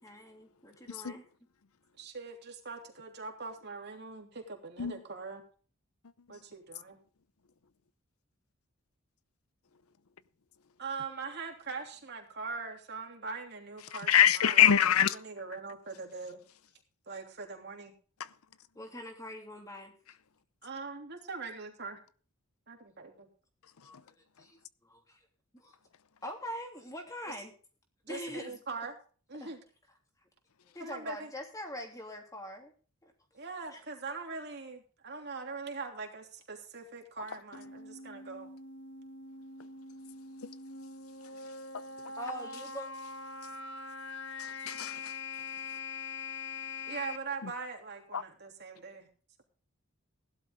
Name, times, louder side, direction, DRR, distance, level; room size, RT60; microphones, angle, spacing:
voice 1, 0.0-1.3 18.7-19.9 23.8-23.9 24.4-25.2 25.5-25.7 26.2-27.5 28.1-28.5 29.3-29.5 30.6-32.7 33.0-33.1 33.7-33.8 42.2-42.9, equal, 15° left, 3.0 m, -43 dB
voice 2, 2.0-5.4 6.3-7.0 10.8-16.4 17.1-17.9 20.6-22.0 22.7-23.3 28.1-28.9 29.3-29.6 30.8-31.3 33.3-38.5 46.8-49.1, right 4 dB, 50° right, 3.2 m, -42 dB
voice 3, 13.9-15.2 44.4-45.1 48.1-48.2, left 9 dB, 85° left, 0.7 m, -24 dB
sound 1, 37.5-47.2, left 4 dB, 55° left, 1.6 m, -43 dB
16.5 x 12.0 x 3.7 m
head